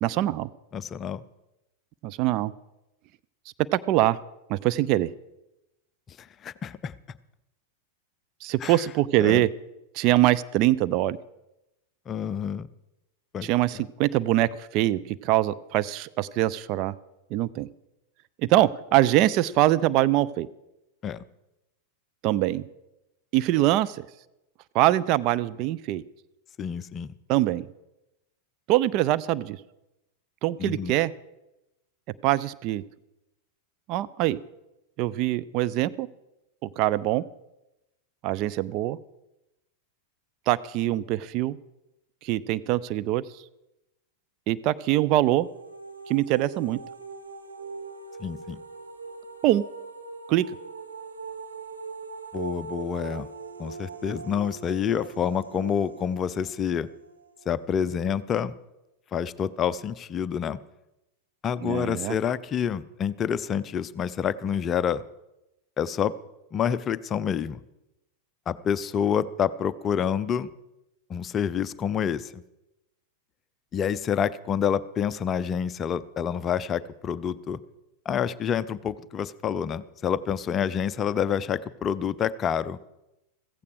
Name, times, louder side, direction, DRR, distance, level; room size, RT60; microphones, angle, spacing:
voice 1, 0.0-0.5 2.0-2.5 3.7-4.2 4.5-5.1 8.4-9.5 9.9-11.2 13.4-16.9 17.3-17.7 18.4-20.5 22.2-22.7 23.3-24.1 24.7-26.0 27.3-27.7 28.7-29.6 30.4-31.1 32.2-32.8 33.9-34.4 35.0-36.1 36.8-37.2 38.2-39.0 40.5-41.6 42.2-43.2 44.5-45.5 46.1-46.8 49.4-49.6 50.3-50.5 61.6-62.1, right 15 dB, 40° right, 15 dB, 0.4 m, -23 dB
voice 2, 0.7-1.2 6.2-6.9 8.6-8.8 9.2-9.4 12.1-12.7 13.3-13.5 21.0-21.2 26.6-27.1 30.6-30.9 48.2-48.6 52.3-53.3 53.6-56.9 57.5-58.5 59.1-60.6 61.4-65.0 65.8-66.1 66.5-67.6 68.5-70.5 71.1-72.4 73.7-77.6 78.1-82.8, left 8 dB, 25° left, 17 dB, 0.5 m, -28 dB
sound 1, 45.1-58.0, right 5 dB, 75° right, 1.7 m, -41 dB
15.0 x 15.0 x 4.8 m, 0.93 s
figure-of-eight pair, 90°, 0 cm